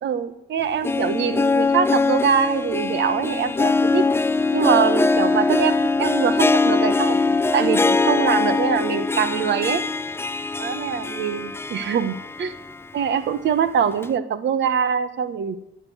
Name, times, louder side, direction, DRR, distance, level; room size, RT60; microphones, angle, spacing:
voice 1, 0.0-4.1 4.5-9.8 10.6-12.5 12.9-15.6, right 8 dB, 65° right, 13 dB, 1.4 m, -23 dB
Harp, 0.6-12.7 13.1-13.2 14.0-14.1, left 3 dB, 10° left, 0.5 m, -22 dB
14.5 x 8.9 x 8.1 m, 0.79 s
cardioid pair, 90°, 20 cm